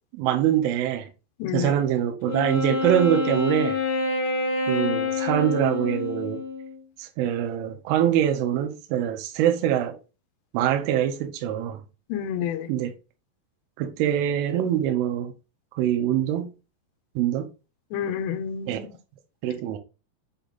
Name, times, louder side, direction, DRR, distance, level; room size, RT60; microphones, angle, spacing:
voice 1, 0.2-1.1 1.5-3.8 4.7-6.4 7.0-10.0 10.5-11.8 12.7-12.9 13.8-15.3 15.8-16.5 17.2-17.5 18.7-18.8 19.4-19.8, right 10 dB, 80° right, 3.2 m, -24 dB
voice 2, 1.4-1.7 12.1-12.7 17.9-18.9, left 8 dB, 80° left, 2.6 m, -29 dB
Wind instrument woodwind instrument, 2.3-6.8, left 3 dB, 60° left, 2.4 m, -27 dB
7.9 x 3.4 x 4.0 m
omnidirectional pair, 5.7 m